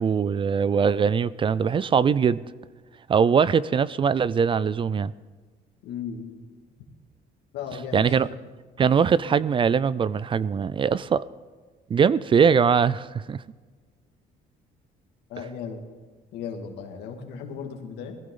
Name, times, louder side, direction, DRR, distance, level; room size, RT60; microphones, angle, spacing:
voice 1, 0.0-2.4 3.1-5.1 7.9-8.3 8.8-11.2 11.9-13.4, right 6 dB, 30° right, 0.4 m, -21 dB
voice 2, 5.8-6.4 7.5-8.2 15.3-15.8 16.3-18.2, left 6 dB, 85° left, 2.1 m, -36 dB
20.0 x 15.0 x 3.8 m
cardioid pair, 110°, 17 cm